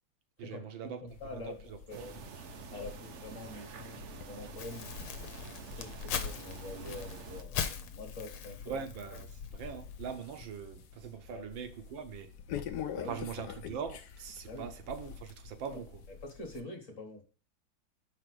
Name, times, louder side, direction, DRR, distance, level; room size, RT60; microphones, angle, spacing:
voice 1, 0.4-1.0 1.3-2.3 8.7-12.3 13.0-16.0, right 7 dB, 70° right, 1.5 m, -42 dB
voice 2, 1.0-1.6 1.9-2.2 2.7-4.9 5.6-8.8 11.3-11.4 12.9-13.2 14.5-14.7 15.7-15.8 16.2-17.2, left 2 dB, 40° left, 1.5 m, -45 dB
sound 1, 1.1-16.6, left 8 dB, 70° left, 1.1 m, -47 dB
sound 2, 1.9-7.4, right 6 dB, 90° right, 0.6 m, -48 dB
Crumpling crinkling, 4.6-10.2, left 7 dB, 85° left, 1.7 m, -41 dB
5.5 x 4.9 x 6.0 m
omnidirectional pair, 2.3 m